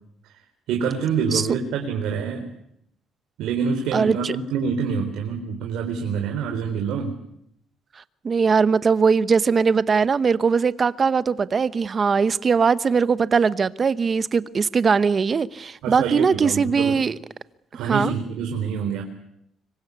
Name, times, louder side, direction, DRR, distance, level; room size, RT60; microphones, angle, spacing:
voice 1, 0.7-2.5 3.4-7.2 15.8-17.0 17.7-19.0, right 6 dB, 85° right, 4.2 m, -26 dB
voice 2, 3.9-4.3 8.2-17.2 17.9-18.1, right 5 dB, 30° right, 1.0 m, -20 dB
26.0 x 23.5 x 8.4 m
cardioid pair, 135°, 0 cm